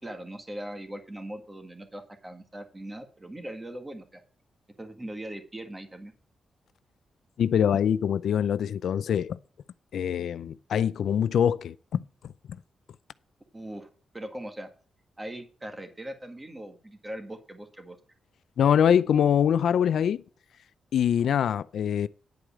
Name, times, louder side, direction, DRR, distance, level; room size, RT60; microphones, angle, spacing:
voice 1, 0.0-4.2 4.8-6.1 13.5-13.9 14.1-14.7 15.2-18.0, right 1 dB, 15° right, 1.7 m, -40 dB
voice 2, 7.4-9.4 9.9-12.0 18.6-20.2 20.9-22.1, left 8 dB, 80° left, 0.5 m, -24 dB
10.5 x 4.8 x 7.1 m
cardioid pair, 110°, 0 cm